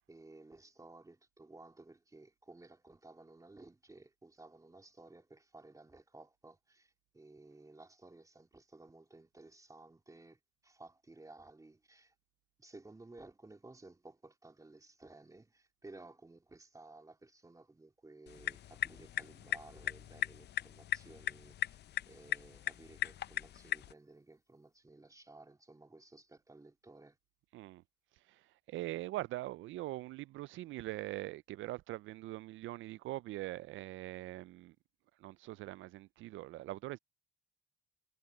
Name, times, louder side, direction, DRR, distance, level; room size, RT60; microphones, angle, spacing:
voice 1, 0.1-12.1 12.6-21.8 22.1-27.2, right 2 dB, 15° right, 3.0 m, -56 dB
sound 1, 18.3-23.9, left 11 dB, 60° left, 0.6 m, -39 dB
voice 2, 27.5-27.8 28.3-34.8 35.2-37.0, right 16 dB, 80° right, 0.4 m, -42 dB
cardioid pair, 90°, 20 cm